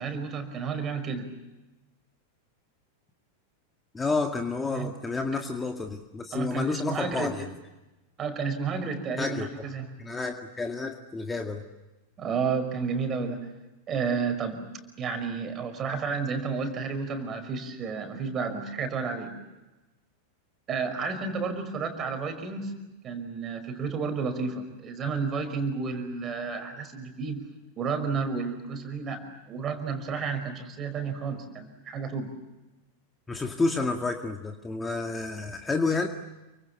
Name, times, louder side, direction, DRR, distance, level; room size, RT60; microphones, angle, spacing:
voice 1, 0.0-1.3 4.7-4.9 6.3-7.3 8.2-9.9 12.2-13.5 13.9-14.7 15.0-19.3 20.7-22.7 23.0-27.5 27.8-32.3, right 5 dB, 30° right, 8 dB, 5.4 m, -31 dB
voice 2, 3.9-7.5 9.2-9.5 10.0-11.6 33.3-36.1, left 3 dB, 15° left, 4 dB, 2.0 m, -30 dB
29.0 x 25.5 x 7.1 m, 1.0 s
figure-of-eight pair, 90°, 0 cm